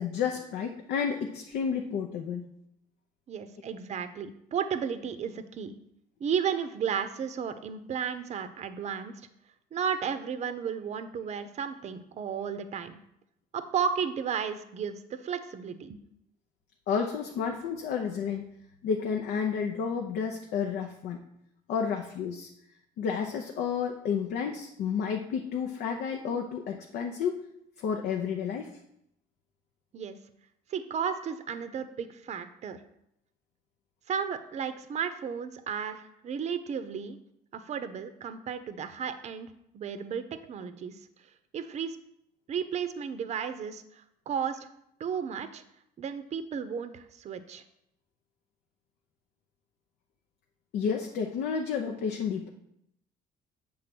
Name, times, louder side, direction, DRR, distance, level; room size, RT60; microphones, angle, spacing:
voice 1, 0.0-2.5 16.9-18.4 18.8-21.2 21.7-22.5 23.0-27.4 27.8-28.7 50.7-52.5, left 6 dB, 75° left, 2 dB, 0.7 m, -31 dB
voice 2, 3.3-5.7 6.2-9.1 9.7-13.0 13.5-16.0 29.9-30.2 30.7-32.8 34.1-37.2 37.5-39.5 39.7-41.0 41.5-42.0 42.5-44.7 45.0-45.6 46.0-47.6, right 7 dB, 40° right, 10 dB, 0.6 m, -33 dB
7.6 x 3.6 x 6.0 m, 0.77 s
cardioid pair, 110°, 17 cm